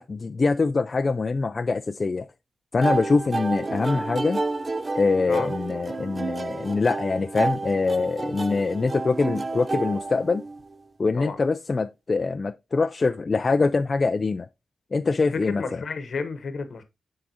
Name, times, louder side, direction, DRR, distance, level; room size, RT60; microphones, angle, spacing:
voice 1, 0.0-2.3 2.7-4.4 4.9-10.4 11.0-14.5 14.9-15.6, left 4 dB, 45° left, 0.3 m, -24 dB
sound 1, 2.8-10.7, right 3 dB, 40° right, 0.4 m, -30 dB
voice 2, 15.3-16.8, left 4 dB, 70° left, 1.0 m, -31 dB
10.0 x 3.7 x 2.8 m
cardioid pair, 75°, 0 cm